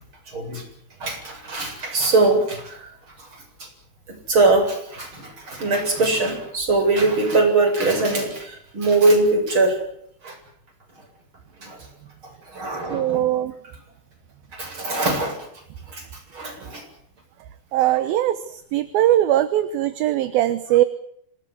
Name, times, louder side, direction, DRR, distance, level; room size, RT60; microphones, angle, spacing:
voice 1, 0.3-0.6 1.0-2.9 3.2-3.7 4.3-9.8 10.2-10.4 11.6-11.9 12.5-13.2 14.5-15.5 15.9-16.0 16.3-16.8, right 2 dB, 30° right, 3 dB, 8.5 m, -22 dB
voice 2, 12.9-13.5 17.7-18.4 18.7-20.8, right 13 dB, 70° right, 13 dB, 2.7 m, -20 dB
26.5 x 20.0 x 8.0 m, 0.70 s
omnidirectional pair, 4.7 m